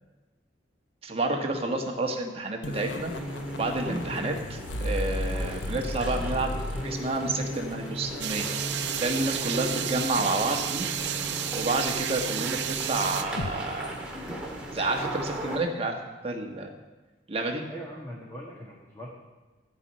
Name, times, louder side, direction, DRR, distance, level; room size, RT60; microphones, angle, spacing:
voice 1, 1.0-3.1 3.5-6.5 6.8-8.5 9.0-10.9 11.5-14.0 14.7-16.7 17.3-17.6, right 2 dB, 35° right, 3 dB, 1.5 m, -30 dB
sound 1, 2.6-13.5, left 1 dB, 90° left, 0.9 m, -36 dB
sound 2, 2.9-15.6, right 1 dB, 5° right, 1.9 m, -39 dB
sound 3, 8.2-13.2, right 10 dB, 65° right, 0.7 m, -31 dB
voice 2, 17.7-19.1, equal, 15° left, -5 dB, 1.7 m, -41 dB
15.0 x 5.5 x 8.9 m, 1.2 s
head